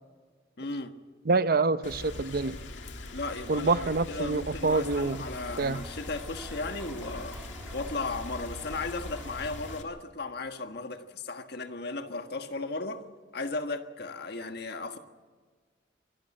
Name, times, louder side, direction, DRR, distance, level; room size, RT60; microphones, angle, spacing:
voice 1, 0.6-0.9 3.1-7.4 7.7-13.0 13.3-15.0, left 3 dB, 65° left, 7 dB, 1.5 m, -36 dB
voice 2, 1.3-2.5 3.5-5.2 5.6-5.8, right 3 dB, 55° right, 14 dB, 0.7 m, -26 dB
Rain, 1.8-9.8, left 2 dB, 90° left, 2.1 m, -42 dB
sound 1, 4.6-9.8, right 1 dB, 10° right, 2.5 m, -49 dB
25.0 x 12.5 x 8.8 m, 1.5 s
head